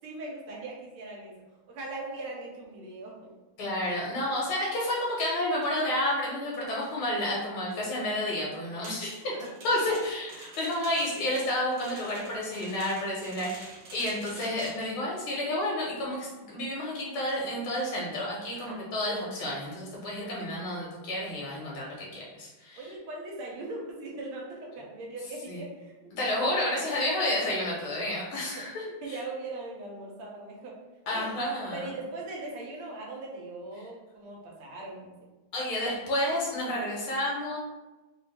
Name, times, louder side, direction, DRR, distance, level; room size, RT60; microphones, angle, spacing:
voice 1, 0.0-1.3 1.7-3.2 9.3-9.5 14.3-14.4 18.5-18.8 22.8-26.1 28.4-30.8 31.1-31.3 31.7-35.1, right 2 dB, 85° right, -2 dB, 1.8 m, -40 dB
voice 2, 3.6-9.3 9.6-22.9 25.5-25.6 26.2-29.2 31.1-31.9 35.5-37.6, left 1 dB, 80° left, -4 dB, 2.0 m, -30 dB
sound 1, 8.8-14.9, right 2 dB, 60° right, 1.4 m, -47 dB
4.3 x 2.4 x 3.3 m, 1.1 s
omnidirectional pair, 2.3 m